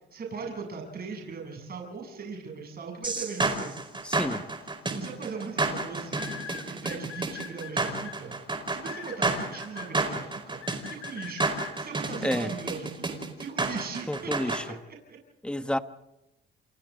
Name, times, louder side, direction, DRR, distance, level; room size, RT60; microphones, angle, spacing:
voice 1, 0.1-3.8 4.9-6.2 6.8-11.5 11.8-15.0, right 5 dB, 50° right, 8.0 m, -39 dB
sound 1, 3.0-14.6, right 3 dB, 25° right, 4.9 m, -30 dB
voice 2, 4.0-4.5 12.2-12.5 14.1-14.8 15.4-15.8, left 1 dB, 5° left, 1.3 m, -30 dB
sound 2, 4.6-4.9 6.1-8.1 8.8-9.9 10.6-11.7, left 10 dB, 85° left, 5.9 m, -41 dB
29.0 x 28.0 x 4.0 m
cardioid pair, 90°, 20 cm